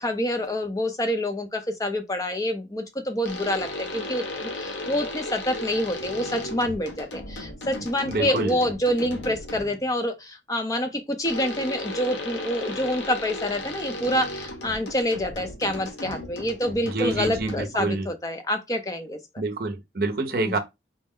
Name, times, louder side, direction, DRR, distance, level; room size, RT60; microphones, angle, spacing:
voice 1, 0.0-19.2 20.4-20.6, left 1 dB, 20° left, 0.5 m, -27 dB
sound 1, 3.2-9.9 11.2-17.9, left 1 dB, 85° left, 0.9 m, -35 dB
voice 2, 8.1-8.6 16.8-18.1 19.4-20.6, right 2 dB, 55° right, 0.6 m, -27 dB
4.1 x 2.1 x 3.6 m
head